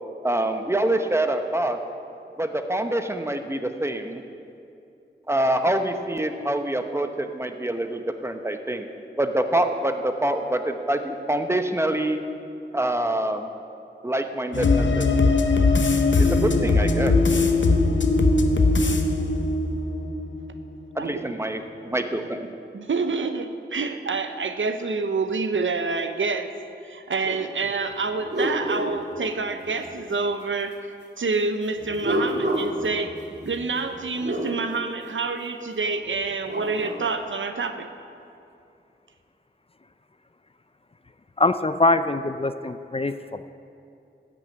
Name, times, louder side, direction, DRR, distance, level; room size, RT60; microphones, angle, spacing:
voice 1, 0.2-1.8 2.4-4.2 5.3-8.9 9.2-12.2 12.7-13.5 14.0-15.1 16.2-17.2 21.0-22.4, right 1 dB, 15° right, 6 dB, 0.9 m, -25 dB
sound 1, 14.5-20.6 20.9-21.0, left 3 dB, 70° left, 0.9 m, -20 dB
voice 2, 21.0-21.4 22.7-26.5 26.9-30.8 31.2-33.1 33.4-37.9, right 4 dB, 85° right, 8 dB, 0.7 m, -27 dB
sound 2, 27.2-27.4 27.9-29.9 31.8-34.5 36.2-37.0, right 1 dB, 60° right, 2.2 m, -30 dB
voice 3, 41.4-43.5, left 2 dB, 30° left, 11 dB, 0.4 m, -23 dB
13.5 x 6.2 x 8.8 m, 2.7 s
wide cardioid pair, 65°, 20 cm